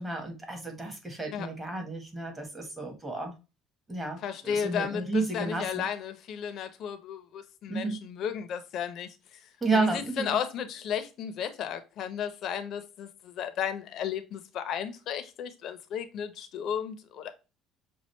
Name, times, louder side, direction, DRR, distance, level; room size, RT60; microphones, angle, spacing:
voice 1, 0.0-3.3 3.9-5.9 7.7-8.0 9.6-10.3, right 3 dB, 10° right, 1.5 m, -32 dB
voice 2, 4.2-9.1 9.7-17.3, left 8 dB, 55° left, 0.9 m, -34 dB
6.3 x 2.5 x 3.2 m
cardioid pair, 135°, 0 cm